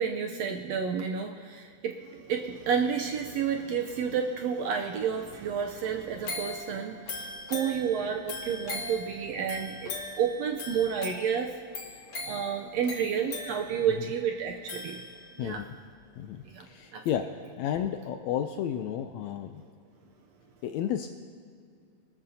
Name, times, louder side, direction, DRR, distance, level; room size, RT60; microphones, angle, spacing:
voice 1, 0.0-11.5 12.2-15.0 15.4-15.6 16.5-16.6 16.9-17.0, right 7 dB, 75° right, 3 dB, 1.6 m, -30 dB
sound 1, 6.2-15.5 16.0-16.1, left 2 dB, 45° left, 2.3 m, -40 dB
voice 2, 16.2-19.6 20.6-21.1, left 9 dB, 80° left, 7 dB, 1.6 m, -32 dB
25.5 x 13.5 x 2.8 m, 2.4 s
omnidirectional pair, 3.6 m